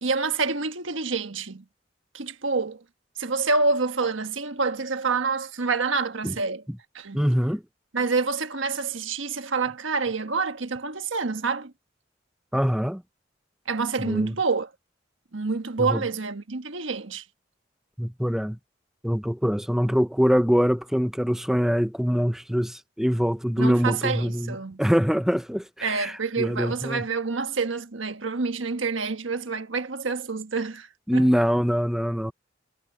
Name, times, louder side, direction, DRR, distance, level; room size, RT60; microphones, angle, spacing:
voice 1, 0.0-1.6 2.1-2.8 3.2-6.6 6.9-7.2 7.9-11.7 13.7-14.7 15.3-17.2 23.6-24.8 25.8-30.9 31.1-31.3, right 4 dB, 80° right, 1.4 m, -27 dB
voice 2, 7.1-7.6 12.5-13.0 14.0-14.3 15.8-16.0 18.0-18.6 19.0-27.0 31.1-32.3, equal, ahead, 0.7 m, -24 dB
head